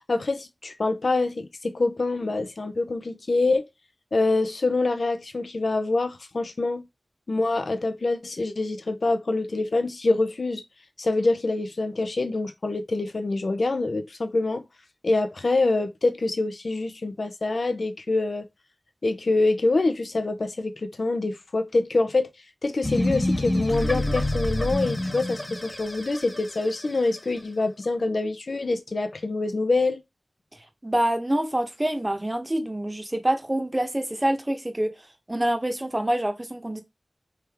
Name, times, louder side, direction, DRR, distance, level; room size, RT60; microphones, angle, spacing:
voice 1, 0.1-3.7 4.1-6.8 7.3-10.6 11.0-14.6 15.0-18.5 19.0-22.3 22.6-30.0, left 2 dB, 80° left, 0.6 m, -25 dB
sound 1, 22.8-27.2, left 1 dB, 25° left, 1.2 m, -27 dB
voice 2, 30.8-34.9 35.3-36.8, right 1 dB, 25° right, 0.9 m, -26 dB
3.3 x 2.9 x 3.5 m
wide cardioid pair, 50°, 0 cm